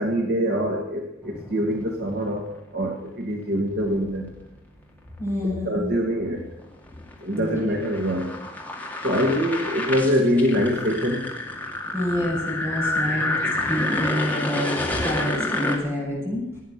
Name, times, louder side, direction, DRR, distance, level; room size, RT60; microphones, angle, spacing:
voice 1, 0.0-4.3 5.4-6.5 7.2-8.4 9.0-11.4 13.1-13.2, equal, 55° right, 2 dB, 1.8 m, -24 dB
sound 1, 1.2-2.3 3.8-4.5 6.3-15.8, left 2 dB, 10° left, 2.3 m, -29 dB
voice 2, 5.2-6.0 7.3-7.6 11.9-13.3 13.7-16.5, left 1 dB, 10° right, -4 dB, 7.4 m, -27 dB
17.0 x 9.4 x 8.0 m, 0.91 s
head